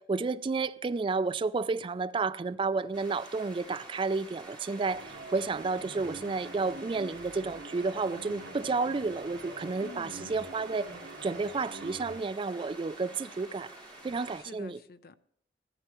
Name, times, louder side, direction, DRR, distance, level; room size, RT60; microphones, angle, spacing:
voice 1, 0.0-10.9 11.2-13.7 14.0-14.8, right 4 dB, 30° right, 0.3 m, -31 dB
sound 1, 2.9-14.4, right 2 dB, 5° left, 5.3 m, -49 dB
sound 2, 4.8-12.2, right 2 dB, 65° right, 1.7 m, -46 dB
voice 2, 9.8-10.3 14.4-15.2, left 2 dB, 60° left, 0.6 m, -48 dB
15.0 x 13.0 x 3.0 m
head